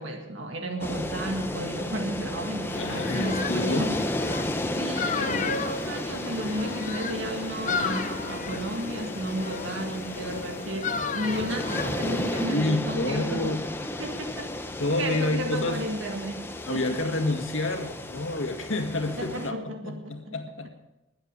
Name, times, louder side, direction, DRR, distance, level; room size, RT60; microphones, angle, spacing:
voice 1, 0.0-4.0 4.6-13.6 14.0-14.5 14.9-17.2 19.2-20.3, right 1 dB, 75° right, 3 dB, 1.9 m, -33 dB
sound 1, 0.8-19.5, left 1 dB, 10° left, 0.7 m, -34 dB
sound 2, 2.7-12.5, left 4 dB, 40° left, 0.8 m, -33 dB
voice 2, 2.8-3.9 5.1-5.6 12.4-13.7 14.8-15.8 16.7-20.7, left 2 dB, 85° left, 5 dB, 1.9 m, -29 dB
21.0 x 8.1 x 5.4 m, 0.99 s
head